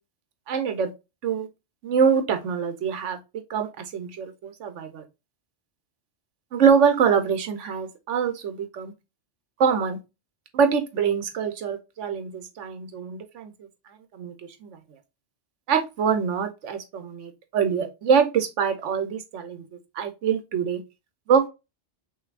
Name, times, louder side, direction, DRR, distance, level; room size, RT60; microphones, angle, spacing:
voice 1, 0.5-0.9 1.2-1.5 1.8-3.2 3.5-5.0 6.5-8.9 9.6-10.0 10.5-13.5 14.1-14.3 14.6-14.8 15.7-19.7 19.9-20.8 21.3-21.5, right 6 dB, 80° right, 1.1 m, -24 dB
6.5 x 2.7 x 2.4 m
omnidirectional pair, 1.2 m